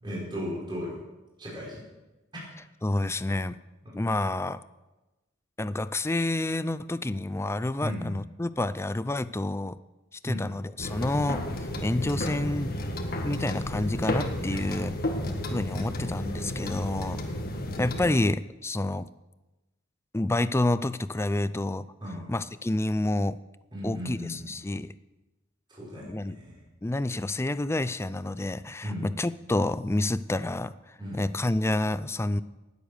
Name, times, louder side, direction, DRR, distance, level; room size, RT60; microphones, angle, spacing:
voice 1, 0.0-1.0 1.4-1.8 2.3-2.5 3.8-3.9 7.8-8.2 10.2-10.4 14.5-14.6 15.0-15.5 22.0-22.3 23.7-24.5 25.7-26.6 28.8-29.1 31.0-31.2, equal, 25° right, -6 dB, 5.1 m, -36 dB
voice 2, 2.8-3.6 3.9-4.6 5.6-9.8 10.2-12.8 13.2-14.9 15.5-17.3 17.8-19.1 20.1-21.9 22.3-23.4 23.8-24.9 26.1-26.4 26.8-30.7 31.1-32.4, left 2 dB, 15° left, 15 dB, 0.4 m, -28 dB
sound 1, 10.8-18.1, left 1 dB, 50° left, 1.7 m, -32 dB
19.0 x 8.2 x 6.6 m, 1.1 s
head